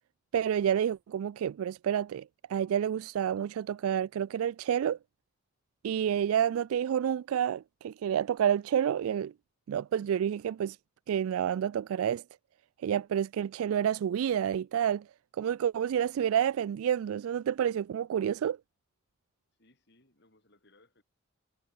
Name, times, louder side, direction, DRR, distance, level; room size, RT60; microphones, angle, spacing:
voice 1, 0.3-5.0 5.8-9.3 9.7-10.8 11.1-12.2 12.8-15.1 15.3-18.6, right 9 dB, 85° right, 0.3 m, -29 dB
voice 2, 19.6-21.0, left 2 dB, 55° left, 5.7 m, -65 dB
head